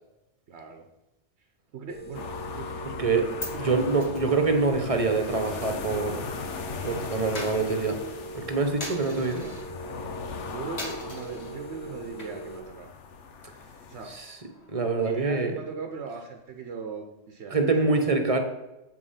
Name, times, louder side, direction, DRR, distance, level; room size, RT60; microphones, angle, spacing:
voice 1, 0.5-0.9 1.7-2.8 3.0-4.1 4.5-5.7 9.1-9.5 10.5-12.9 13.9-14.1 15.0-18.0, right 5 dB, 70° right, 5 dB, 1.0 m, -40 dB
sound 1, 1.9-12.6, right 2 dB, 15° left, 0.4 m, -41 dB
sound 2, 2.1-14.2, left 6 dB, 80° left, 1.2 m, -39 dB
Coin (dropping), 3.4-6.5 6.8-9.7 10.1-10.4 10.8-11.5 12.0-12.6 12.9-13.0 13.4-15.3, left 2 dB, 65° left, 2.0 m, -43 dB
voice 2, 3.6-6.3 6.8-8.0 8.3-9.5 14.1-14.3 14.7-15.5 17.5-18.4, right 3 dB, 30° right, 5 dB, 1.0 m, -25 dB
7.7 x 5.4 x 5.6 m, 0.98 s
omnidirectional pair, 1.2 m